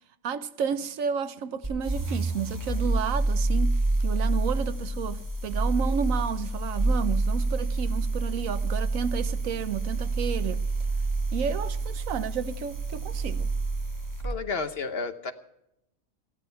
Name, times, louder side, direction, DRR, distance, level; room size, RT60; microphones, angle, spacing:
voice 1, 0.2-10.6 11.3-13.5, right 7 dB, 75° right, 1.2 m, -32 dB
sound 1, 1.6-14.3, right 2 dB, 15° right, 2.1 m, -28 dB
voice 2, 14.2-15.3, left 4 dB, 50° left, 1.1 m, -31 dB
16.5 x 13.0 x 5.6 m
omnidirectional pair, 1.4 m